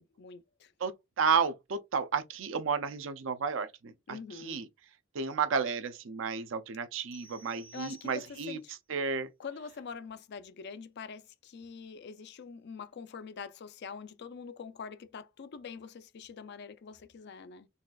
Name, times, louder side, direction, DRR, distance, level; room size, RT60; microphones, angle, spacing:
voice 1, 0.0-0.7 4.1-4.6 7.7-8.8 9.4-17.7, left 6 dB, 55° left, 0.4 m, -45 dB
voice 2, 0.8-4.7 5.1-8.6 8.9-9.3, right 6 dB, 70° right, 0.5 m, -32 dB
sound 1, 7.1-8.6, right 3 dB, 75° left, 1.3 m, -55 dB
4.1 x 2.4 x 2.3 m
head